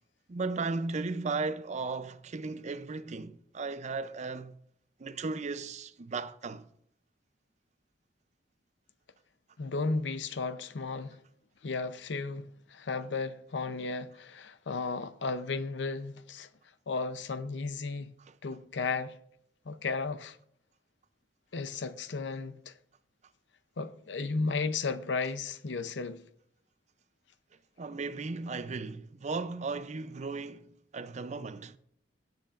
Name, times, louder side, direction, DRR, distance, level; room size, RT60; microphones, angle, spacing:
voice 1, 0.3-4.6 5.0-6.7 27.8-31.8, right 3 dB, 40° right, 0.5 m, -36 dB
voice 2, 9.6-11.2 11.6-16.5 16.9-18.1 18.4-19.2 19.7-20.4 21.5-22.7 23.8-26.2, left 4 dB, 80° left, 0.6 m, -34 dB
17.0 x 7.8 x 2.5 m
head